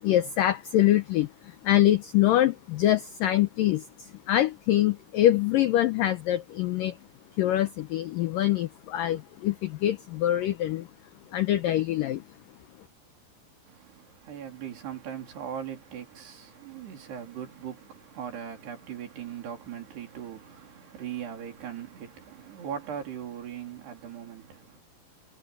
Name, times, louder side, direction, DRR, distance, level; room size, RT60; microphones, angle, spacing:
voice 1, 0.0-7.0 7.4-10.9 11.3-12.2, left 13 dB, 80° left, 2.0 m, -24 dB
voice 2, 13.7-24.8, right 8 dB, 70° right, 5.6 m, -39 dB
omnidirectional pair, 5.0 m